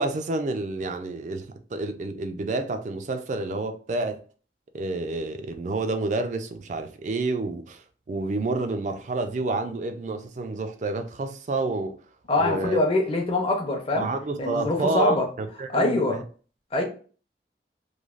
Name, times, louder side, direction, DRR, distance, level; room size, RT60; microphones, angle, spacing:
voice 1, 0.0-4.2 4.7-12.0 12.4-12.8 13.9-16.2, right 2 dB, 45° right, 0.4 m, -29 dB
voice 2, 12.3-14.1 14.4-15.2 15.7-16.2 16.7-16.8, left 2 dB, 30° left, 0.6 m, -23 dB
3.1 x 2.2 x 2.4 m
head